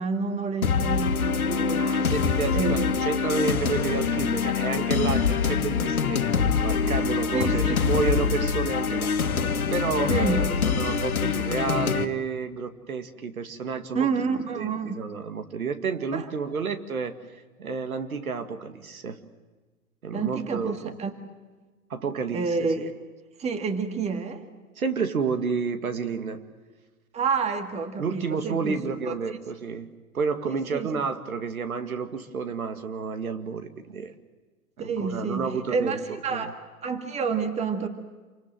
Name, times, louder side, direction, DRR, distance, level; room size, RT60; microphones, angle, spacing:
voice 1, 0.0-2.0 2.5-2.9 7.3-7.8 10.1-10.4 13.9-14.9 16.1-16.3 20.1-21.1 22.3-22.9 23.4-24.4 27.1-29.1 30.5-30.9 34.8-36.5 36.8-37.9, right 5 dB, 15° right, 7 dB, 2.0 m, -29 dB
sound 1, 0.6-12.1, left 6 dB, 75° left, 1.8 m, -25 dB
voice 2, 1.8-9.3 9.7-17.2 17.6-19.2 20.0-20.9 21.9-22.9 24.8-26.4 28.0-29.9 30.1-34.1 34.8-36.5, right 5 dB, 70° right, 8 dB, 2.3 m, -30 dB
28.5 x 25.0 x 7.7 m, 1.3 s
figure-of-eight pair, 115°, 44 cm